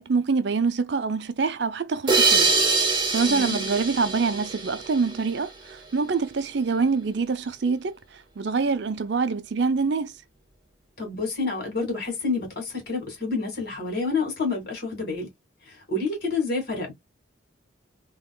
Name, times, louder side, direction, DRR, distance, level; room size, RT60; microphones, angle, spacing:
voice 1, 0.0-2.6 2.9-10.1, right 4 dB, 60° right, 0.5 m, -25 dB
sound 1, 2.1-5.4, right 4 dB, 25° right, 1.1 m, -23 dB
voice 2, 3.3-3.6 11.0-15.3 15.9-16.9, left 3 dB, 50° left, 2.2 m, -28 dB
3.6 x 2.9 x 2.3 m
head